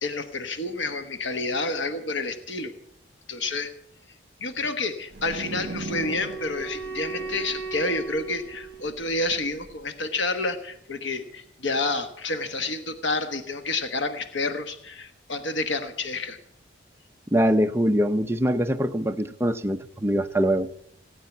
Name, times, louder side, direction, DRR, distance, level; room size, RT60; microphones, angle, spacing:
voice 1, 0.0-2.7 3.3-3.7 4.4-16.4, left 3 dB, 85° left, 8 dB, 1.2 m, -29 dB
sound 1, 5.1-9.8, right 2 dB, 60° right, 1.2 m, -39 dB
Wind instrument woodwind instrument, 5.3-9.5, right 4 dB, 10° left, 2.3 m, -37 dB
voice 2, 17.3-20.7, equal, 15° right, 7 dB, 0.6 m, -23 dB
17.5 x 9.2 x 7.1 m, 0.69 s
head